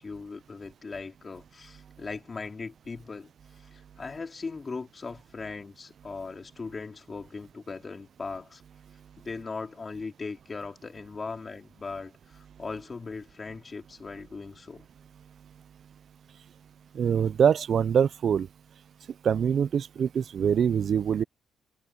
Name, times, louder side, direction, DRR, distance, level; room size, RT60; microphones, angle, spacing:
voice 1, 0.0-3.3 3.7-8.6 9.2-14.8, left 4 dB, 30° left, 3.5 m, -39 dB
voice 2, 16.9-18.5 19.2-21.2, right 8 dB, 55° right, 0.3 m, -24 dB
cardioid pair, 90°, 0 cm